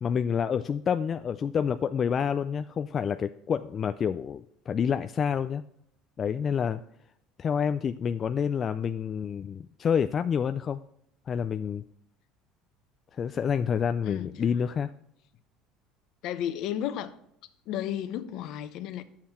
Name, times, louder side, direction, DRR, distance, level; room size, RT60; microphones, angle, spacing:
voice 1, 0.0-5.6 6.2-6.8 7.4-10.8 11.3-11.8 13.1-14.9, left 7 dB, 35° left, 0.3 m, -28 dB
voice 2, 14.0-14.4 16.2-17.1 17.7-19.0, left 10 dB, 60° left, 0.8 m, -33 dB
9.7 x 7.4 x 4.3 m
cardioid pair, 125°, 0 cm